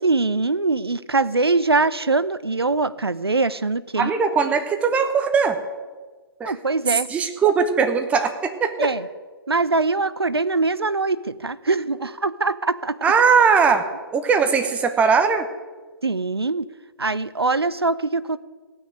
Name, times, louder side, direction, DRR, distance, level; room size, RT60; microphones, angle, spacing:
voice 1, 0.0-4.1 6.5-7.1 8.8-9.1 9.5-13.0 16.0-16.7 17.0-18.4, right 3 dB, 90° right, 15 dB, 0.6 m, -22 dB
voice 2, 4.0-5.6 6.4-6.5 7.1-8.9 13.0-13.9 14.1-15.5, right 5 dB, 10° right, 7 dB, 0.9 m, -19 dB
16.5 x 6.3 x 8.8 m, 1.4 s
figure-of-eight pair, 130°, 13 cm